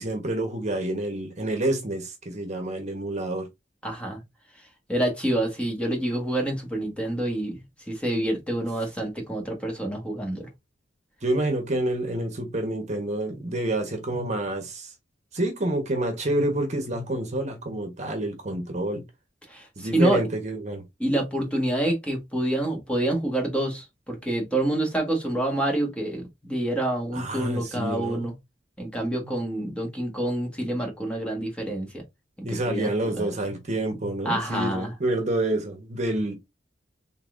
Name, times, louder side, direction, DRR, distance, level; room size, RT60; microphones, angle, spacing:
voice 1, 0.0-3.5 11.2-14.9 15.3-19.0 19.8-20.8 27.1-28.3 32.4-36.3, right 1 dB, 40° right, 1.2 m, -28 dB
voice 2, 3.8-4.2 4.9-7.6 7.9-10.5 19.5-20.2 21.0-28.3 28.8-32.0 32.4-33.3 34.2-34.9, right 1 dB, 5° left, 1.6 m, -27 dB
4.1 x 3.8 x 2.5 m
head